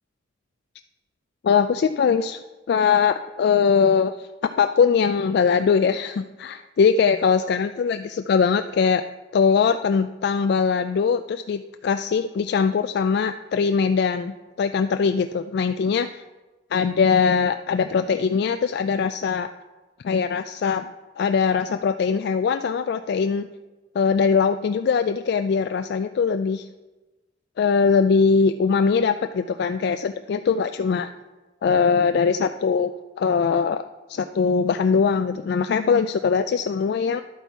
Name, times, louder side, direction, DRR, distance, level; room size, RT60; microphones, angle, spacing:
voice 1, 1.4-2.4 2.7-9.0 9.3-16.2 16.7-19.5 20.0-20.9 21.2-23.5 23.9-26.7 27.6-31.1 31.6-33.8 34.1-37.2, left 6 dB, 60° left, 9 dB, 0.3 m, -21 dB
11.0 x 8.0 x 4.6 m, 1.2 s
head